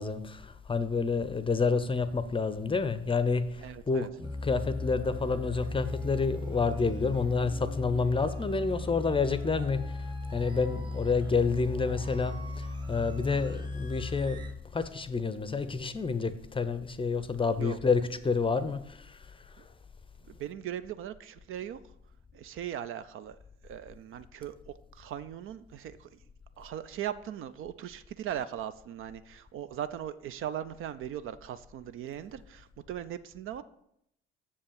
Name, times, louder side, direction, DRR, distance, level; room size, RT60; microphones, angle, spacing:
voice 1, 0.0-19.3, left 4 dB, 15° left, 0.7 m, -29 dB
voice 2, 3.6-4.1 17.6-17.8 20.3-21.8 22.3-23.4 23.6-26.1 26.6-33.6, right 10 dB, 40° right, 0.5 m, -39 dB
sound 1, 4.2-14.5, left 2 dB, 15° right, 1.2 m, -37 dB
6.9 x 5.3 x 7.0 m
figure-of-eight pair, 55°, 31 cm